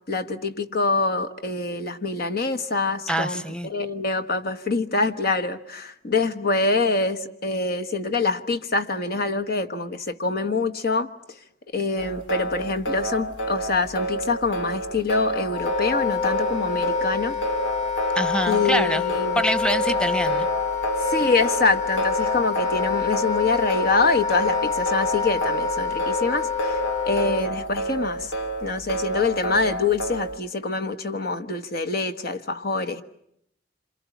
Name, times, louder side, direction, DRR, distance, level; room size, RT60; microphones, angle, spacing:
voice 1, 0.1-11.1 11.7-17.3 18.5-19.4 21.0-28.3 28.6-33.0, left 3 dB, 55° left, 1.3 m, -25 dB
voice 2, 3.1-3.7 18.1-19.1 19.3-20.5, equal, 5° left, 1.1 m, -25 dB
sound 1, 12.0-30.4, right 1 dB, 90° left, 2.8 m, -30 dB
Wind instrument woodwind instrument, 15.5-27.4, left 5 dB, 40° left, 2.2 m, -26 dB
27.5 x 27.5 x 7.2 m
head